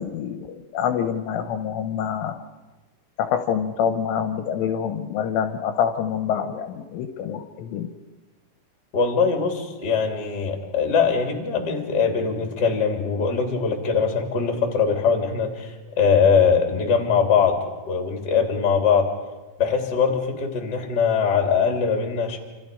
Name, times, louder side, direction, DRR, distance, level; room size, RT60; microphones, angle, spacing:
voice 1, 0.0-2.4 3.2-7.9, left 8 dB, 80° left, 7 dB, 3.4 m, -26 dB
voice 2, 8.9-17.6 17.9-19.1 19.6-22.4, left 6 dB, 25° left, 2 dB, 2.6 m, -21 dB
28.0 x 27.5 x 5.3 m, 1.2 s
omnidirectional pair, 6.0 m